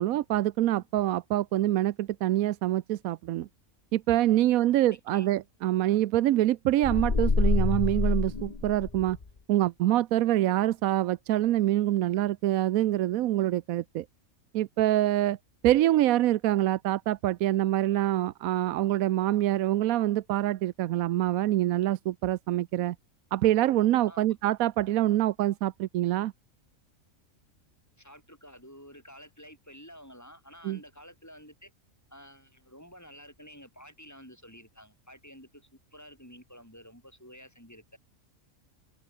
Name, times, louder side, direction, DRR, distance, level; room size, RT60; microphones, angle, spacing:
voice 1, 0.0-3.5 3.9-9.2 9.5-14.1 14.5-15.4 15.6-22.9 23.3-26.3 30.6-30.8, right 14 dB, 85° right, 1.1 m, -25 dB
sound 1, 6.8-9.2, left 4 dB, 30° left, 1.4 m, -26 dB
voice 2, 28.0-31.7 32.1-38.0, equal, 10° left, 7.7 m, -51 dB
omnidirectional pair, 1.5 m